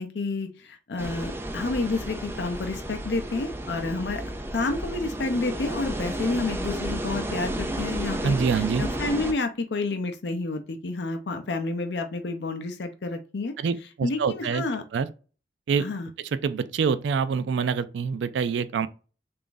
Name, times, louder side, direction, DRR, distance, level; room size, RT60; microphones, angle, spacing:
voice 1, 0.0-4.2 4.5-13.5 14.0-14.8 15.8-16.1, left 3 dB, 70° left, 0.5 m, -30 dB
sound 1, 1.0-9.3, right 1 dB, 15° right, 0.4 m, -32 dB
voice 2, 8.2-8.9 13.6-14.6 14.9-15.1 15.7-15.9 16.4-18.9, right 6 dB, 80° right, 0.3 m, -25 dB
3.5 x 2.5 x 3.8 m
head